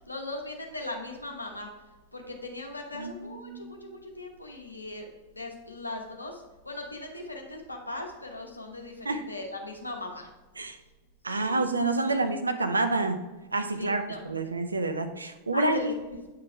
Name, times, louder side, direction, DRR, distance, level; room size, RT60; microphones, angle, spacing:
voice 1, 0.1-1.7 2.1-5.1 5.3-10.3 11.3-11.6 12.0-12.1 13.8-14.2 15.5-16.3, left 2 dB, 85° left, 2 dB, 1.1 m, -39 dB
voice 2, 2.9-3.8 9.0-9.2 10.6-10.8 11.2-13.2 13.5-15.9, right 2 dB, 80° right, 8 dB, 0.6 m, -28 dB
8.4 x 4.7 x 3.4 m, 1.2 s
figure-of-eight pair, 90°, 0 cm